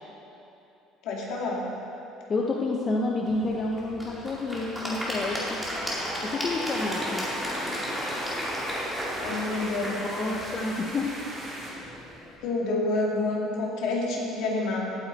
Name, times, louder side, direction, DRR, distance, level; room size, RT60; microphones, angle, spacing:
voice 1, 1.0-1.6 9.2-10.4 12.4-15.0, left 2 dB, 65° left, -3 dB, 2.6 m, -28 dB
voice 2, 2.3-5.6 6.2-7.3 9.7-11.1, left 2 dB, 25° left, -1 dB, 0.8 m, -29 dB
Applause / Crowd, 3.3-12.3, equal, ahead, 2.3 m, -34 dB
sound 1, 6.6-11.7, right 1 dB, 20° right, 2.9 m, -40 dB
17.0 x 8.8 x 4.1 m, 2.8 s
cardioid pair, 160°, 0 cm